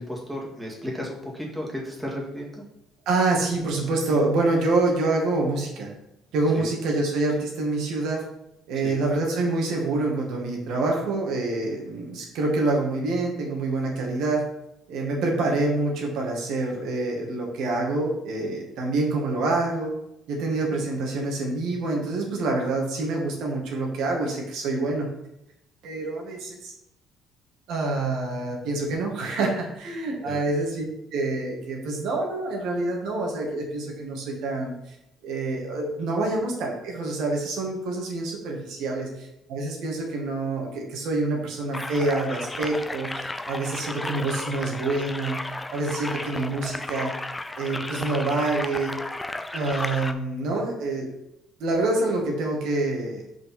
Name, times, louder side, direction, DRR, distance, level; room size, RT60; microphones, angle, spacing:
voice 1, 0.0-2.6 6.5-6.7 8.8-9.0 30.2-30.4, equal, 5° right, -3 dB, 2.2 m, -34 dB
voice 2, 3.1-5.9 6.3-8.2 8.7-14.4 14.9-19.9 20.3-25.1 25.8-26.7 27.7-30.8 31.1-34.7 35.2-47.1 47.6-49.0 49.5-51.1 51.6-53.2, right 2 dB, 70° right, 0 dB, 2.1 m, -26 dB
sound 1, 41.7-50.1, left 2 dB, 10° left, 0.5 m, -34 dB
5.5 x 5.3 x 5.6 m, 0.84 s
cardioid pair, 110°, 0 cm